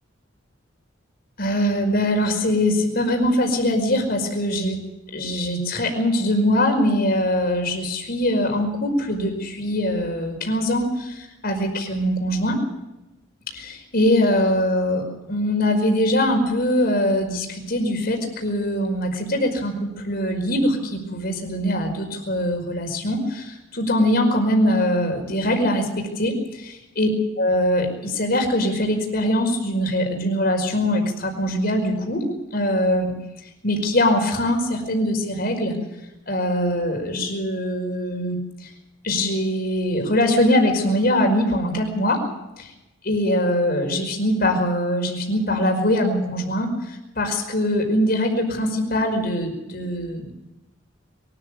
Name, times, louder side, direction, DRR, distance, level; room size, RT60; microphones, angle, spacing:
voice 1, 1.4-4.8 5.1-12.6 13.5-26.3 27.0-27.1 27.4-32.2 32.5-33.1 33.6-35.8 36.3-38.7 39.0-42.2 43.0-50.3, left 1 dB, 50° left, 3 dB, 5.2 m, -22 dB
23.5 x 13.5 x 8.6 m, 0.96 s
head